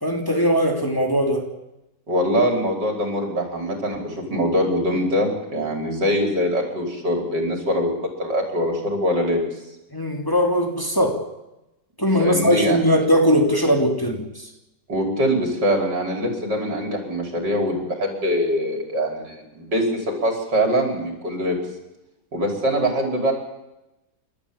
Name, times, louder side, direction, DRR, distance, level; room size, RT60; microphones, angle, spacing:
voice 1, 0.0-1.4 9.9-11.2 12.0-14.5, equal, 10° left, 2 dB, 3.0 m, -20 dB
voice 2, 2.1-9.4 12.2-12.8 14.9-21.6 22.3-23.3, equal, 80° right, 2 dB, 5.7 m, -23 dB
30.0 x 13.0 x 8.8 m, 0.95 s
omnidirectional pair, 1.9 m